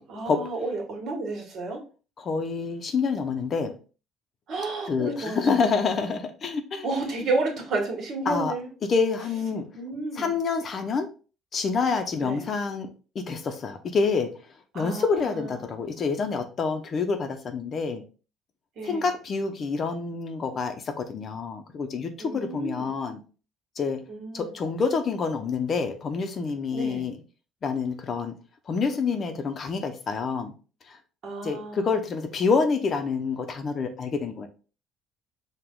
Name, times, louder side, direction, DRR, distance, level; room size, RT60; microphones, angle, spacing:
voice 1, 0.0-1.8 4.5-5.8 6.8-8.7 9.7-10.3 12.2-12.5 14.7-15.4 18.8-19.1 22.2-22.9 24.1-24.5 26.7-27.0 31.2-31.9, right 3 dB, 60° right, 2 dB, 1.7 m, -31 dB
voice 2, 2.2-3.7 4.9-6.9 8.3-8.5 8.8-9.7 10.1-11.1 11.5-14.3 14.7-18.0 18.8-23.2 23.8-24.0 24.3-27.2 27.6-28.4 28.7-30.5 30.9-31.0 31.4-34.5, left 5 dB, 45° left, 7 dB, 0.8 m, -27 dB
4.8 x 2.5 x 3.8 m, 0.35 s
supercardioid pair, 95°, 0 cm